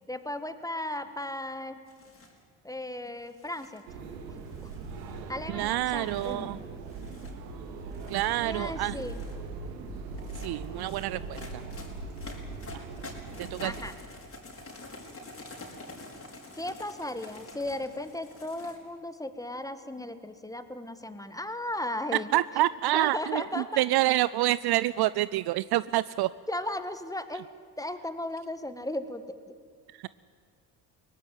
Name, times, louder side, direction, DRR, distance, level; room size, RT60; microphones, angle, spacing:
voice 1, 0.1-1.8 2.6-4.0 4.3-4.5 5.3-6.6 8.4-9.2 13.6-13.9 16.5-22.3 22.9-23.8 26.5-27.5 27.8-29.5, left 1 dB, 5° left, 11 dB, 1.7 m, -36 dB
sound 1, 1.9-2.4 3.3-3.8 4.5-5.3 6.0-6.3 6.9-7.3 7.9-8.3 8.8-9.4 10.1-18.8, left 2 dB, 25° left, 5.0 m, -47 dB
sound 2, 3.9-13.9, right 3 dB, 80° right, 2.1 m, -40 dB
voice 2, 5.5-6.6 8.1-9.0 10.4-11.6 12.7-12.9 13.4-13.7 22.3-26.3, right 16 dB, 50° right, 19 dB, 0.5 m, -27 dB
23.0 x 18.0 x 9.2 m, 2.2 s
hypercardioid pair, 55°, 49 cm